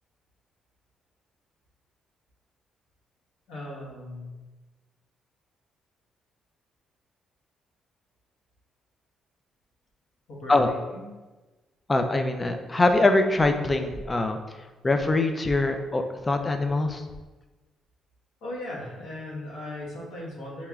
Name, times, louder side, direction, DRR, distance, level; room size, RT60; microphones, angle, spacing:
voice 1, 3.5-4.5 10.3-11.1 18.4-20.7, left 1 dB, 85° left, -5 dB, 1.3 m, -38 dB
voice 2, 11.9-14.4 14.8-17.0, left 2 dB, 25° left, 6 dB, 0.4 m, -23 dB
5.5 x 2.9 x 2.3 m, 1.2 s
cardioid pair, 90°, 0 cm